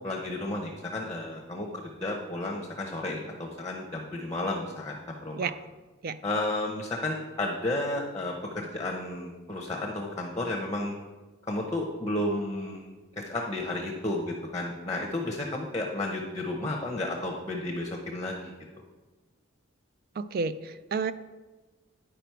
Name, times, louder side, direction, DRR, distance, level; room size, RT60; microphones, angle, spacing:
voice 1, 0.0-1.7 2.0-5.0 5.2-5.5 6.2-10.9 11.5-12.9 13.2-18.5, left 2 dB, 15° left, 1 dB, 0.7 m, -32 dB
voice 2, 20.2-21.1, right 4 dB, 45° right, 13 dB, 0.3 m, -31 dB
10.0 x 5.0 x 4.6 m, 1.2 s
head